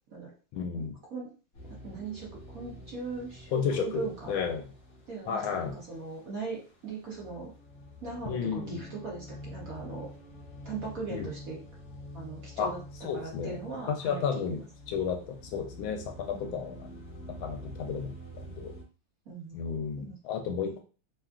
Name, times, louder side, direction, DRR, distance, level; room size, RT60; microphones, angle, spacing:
voice 1, 0.5-1.0 3.5-4.7 5.3-5.8 8.2-8.9 11.1-11.3 12.6-12.7 13.0-13.6 13.9-16.9 17.3-18.7 19.5-20.8, left 6 dB, 75° left, 4 dB, 1.3 m, -33 dB
sound 1, 1.5-18.8, left 1 dB, 50° left, 0.8 m, -47 dB
voice 2, 1.8-4.3 5.1-7.5 8.0-10.1 10.6-11.6 12.1-12.8 13.1-14.2 14.5-14.6 16.3-16.6 19.3-19.6 20.0-20.2 20.6-20.8, right 4 dB, 60° right, -4 dB, 0.9 m, -39 dB
3.5 x 2.3 x 2.3 m, 0.36 s
omnidirectional pair, 2.3 m